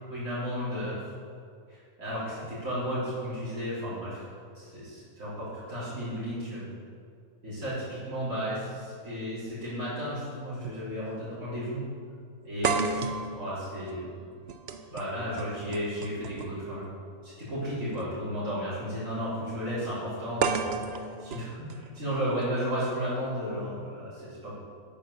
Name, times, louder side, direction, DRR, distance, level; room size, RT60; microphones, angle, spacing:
voice 1, 0.1-1.0 1.7-4.2 4.5-6.6 7.4-11.8 12.4-14.0 14.9-16.9 17.2-24.5, equal, 90° right, -12 dB, 4.0 m, -34 dB
sound 1, 10.6-10.8 11.2-11.3 12.6-16.7 17.9-18.0 20.4-22.4, right 5 dB, 55° right, 0.9 m, -33 dB
8.8 x 8.8 x 6.8 m, 2.3 s
omnidirectional pair, 1.4 m